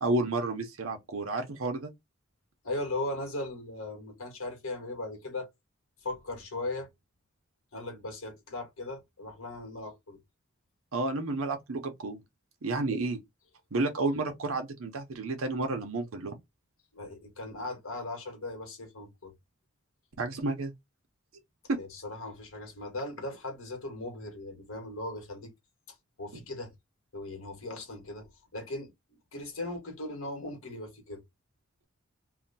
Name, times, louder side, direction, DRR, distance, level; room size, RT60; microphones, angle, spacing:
voice 1, 0.0-1.9 10.9-12.2 12.6-13.2 13.7-16.3 20.2-20.7 21.7-21.8 26.3-26.4, right 2 dB, 85° right, 0.7 m, -31 dB
voice 2, 2.6-5.5 6.0-6.9 7.7-10.2 12.9-13.0 16.9-19.3 21.8-25.5 26.2-26.7 27.1-31.2, left 2 dB, 80° left, 1.3 m, -38 dB
2.8 x 2.2 x 4.0 m
head